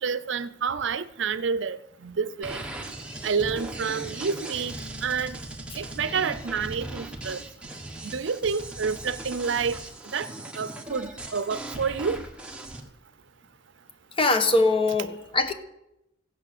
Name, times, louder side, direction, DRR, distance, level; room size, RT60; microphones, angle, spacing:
voice 1, 0.0-2.6 3.2-4.7 5.0-5.4 5.7-7.4 8.0-9.8 10.0-10.3 10.5-12.2, right 5 dB, 70° right, 0.6 m, -29 dB
sound 1, 2.4-12.8, right 2 dB, 5° right, 1.4 m, -38 dB
voice 2, 14.2-15.5, left 2 dB, 30° left, 1.1 m, -22 dB
16.0 x 8.5 x 6.7 m
head